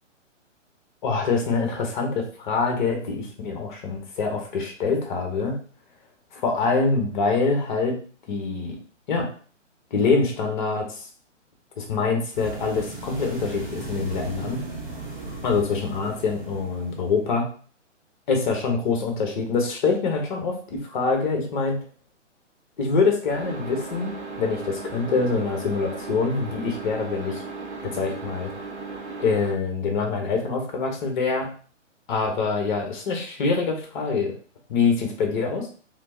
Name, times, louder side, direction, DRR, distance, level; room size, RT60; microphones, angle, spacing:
voice 1, 1.0-5.6 6.3-8.0 8.3-8.8 9.1-9.3 9.9-11.0 11.8-14.6 15.4-17.5 18.3-21.8 22.8-27.4 27.8-28.5 29.2-31.5 32.1-34.3 34.7-35.7, left 4 dB, 40° left, 2 dB, 1.0 m, -25 dB
ocean meco, 12.3-17.3, right 3 dB, 40° right, 1.6 m, -37 dB
sound 1, 23.3-29.5, right 4 dB, 60° right, 1.1 m, -36 dB
3.5 x 2.9 x 2.6 m, 0.41 s
hypercardioid pair, 145°, 38 cm